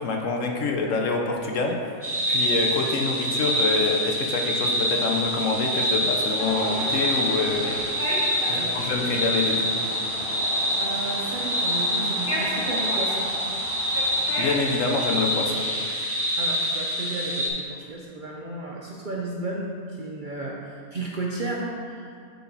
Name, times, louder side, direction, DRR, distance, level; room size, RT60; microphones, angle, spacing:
voice 1, 0.0-1.9 2.3-7.7 8.5-9.7 13.9-15.6, left 3 dB, 65° left, 2 dB, 1.0 m, -26 dB
sound 1, 2.0-17.5, equal, 10° right, 0.7 m, -26 dB
sound 2, 6.4-14.4, equal, 35° left, 1.7 m, -34 dB
voice 2, 8.5-8.8 10.8-13.3 16.4-22.1, right 2 dB, 50° right, -3 dB, 0.6 m, -33 dB
6.7 x 4.2 x 6.0 m, 2.5 s
omnidirectional pair, 1.6 m